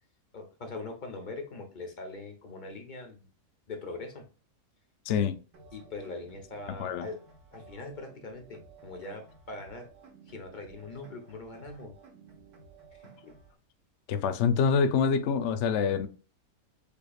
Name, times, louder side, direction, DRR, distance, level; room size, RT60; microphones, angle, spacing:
voice 1, 0.3-3.3 3.7-4.2 5.7-7.2 7.5-9.9 10.3-11.9 13.0-13.3, left 3 dB, 35° left, 1.1 m, -42 dB
voice 2, 5.1-5.4 6.8-7.1 14.1-16.1, left 6 dB, 65° left, 0.7 m, -26 dB
sound 1, 5.5-13.5, right 4 dB, 80° right, 1.8 m, -55 dB
7.0 x 3.2 x 2.4 m
omnidirectional pair, 1.6 m